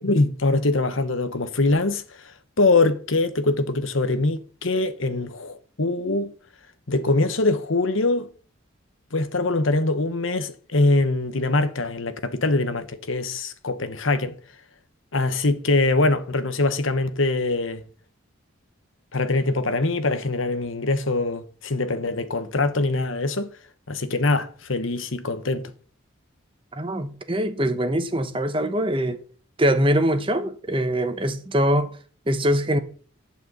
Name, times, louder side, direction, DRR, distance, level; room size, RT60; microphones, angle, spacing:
voice 1, 0.0-6.3 6.9-8.3 9.1-14.4 15.1-17.8 19.1-23.5 23.9-25.7, left 2 dB, 75° left, 1.1 m, -23 dB
voice 2, 26.7-29.2 29.6-31.9 32.3-32.8, equal, 25° right, 1.0 m, -23 dB
11.5 x 5.1 x 7.9 m
head